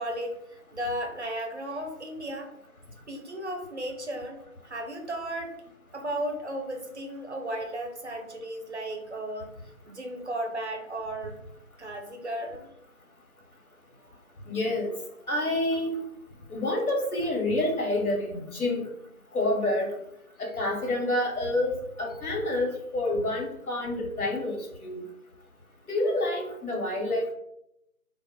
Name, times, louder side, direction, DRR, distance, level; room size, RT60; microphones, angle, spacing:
voice 1, 0.0-2.5 3.1-5.5 5.9-9.5 9.9-11.4 11.8-12.7, right 1 dB, 55° right, 3 dB, 0.5 m, -35 dB
voice 2, 14.5-14.9 15.3-16.0 16.5-18.8 19.3-19.9 20.4-21.7 22.0-25.0 25.9-27.3, left 1 dB, 85° left, 1 dB, 0.9 m, -28 dB
2.1 x 2.0 x 3.6 m, 0.80 s
figure-of-eight pair, 180°, 43 cm